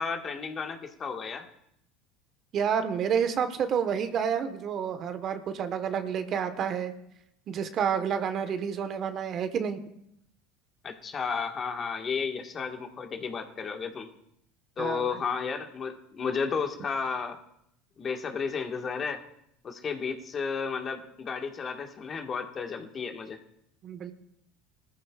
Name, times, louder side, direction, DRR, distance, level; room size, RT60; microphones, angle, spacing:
voice 1, 0.0-1.5 10.8-14.1 14.8-17.4 18.0-19.2 19.6-23.4, left 5 dB, 35° left, 4 dB, 1.6 m, -33 dB
voice 2, 2.5-6.9 7.5-9.8 14.8-15.2 23.8-24.1, right 7 dB, 50° right, 9 dB, 1.3 m, -29 dB
20.0 x 14.0 x 2.4 m, 0.74 s
hypercardioid pair, 85°, 0 cm